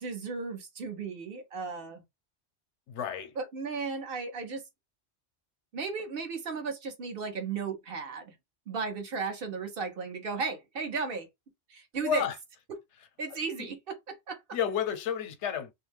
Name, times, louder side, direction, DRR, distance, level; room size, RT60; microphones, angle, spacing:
voice 1, 0.0-2.0 3.4-4.6 5.7-8.3 8.7-11.3 11.7-12.3 13.2-14.4, right 4 dB, 55° right, 0.9 m, -35 dB
voice 2, 2.9-3.3 12.0-12.3 14.5-15.7, left 8 dB, 90° left, 0.9 m, -31 dB
2.6 x 2.1 x 3.3 m
omnidirectional pair, 1.2 m